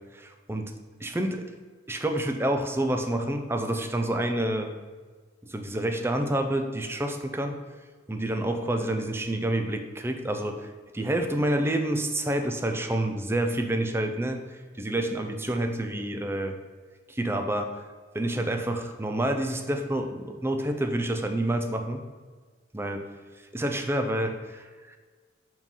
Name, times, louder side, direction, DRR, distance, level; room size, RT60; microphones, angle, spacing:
voice 1, 0.1-0.7 1.0-1.4 1.9-4.7 5.4-7.5 8.1-16.6 17.1-17.7 18.1-22.0 22.7-23.1 23.5-25.0, right 1 dB, 15° right, 5 dB, 0.5 m, -28 dB
5.6 x 5.1 x 5.4 m, 1.5 s
head